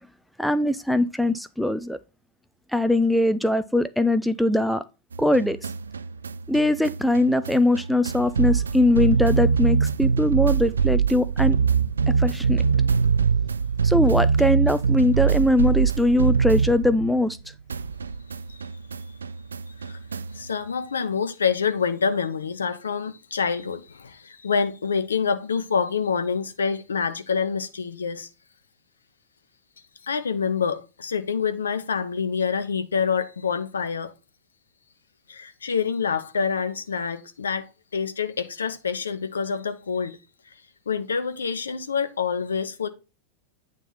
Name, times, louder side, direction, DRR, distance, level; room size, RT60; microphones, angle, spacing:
voice 1, 0.4-2.0 2.7-4.8 5.2-5.6 6.5-11.6 12.1-12.6 13.8-17.4, left 1 dB, ahead, 0.4 m, -21 dB
sound 1, 5.1-17.4 17.7-20.5, right 6 dB, 75° right, 0.3 m, -23 dB
voice 2, 20.3-28.3 30.0-34.1 35.3-40.2 40.5-40.6 40.9-42.9, left 6 dB, 70° left, 0.7 m, -27 dB
9.0 x 3.6 x 5.6 m
figure-of-eight pair, 90°, 0 cm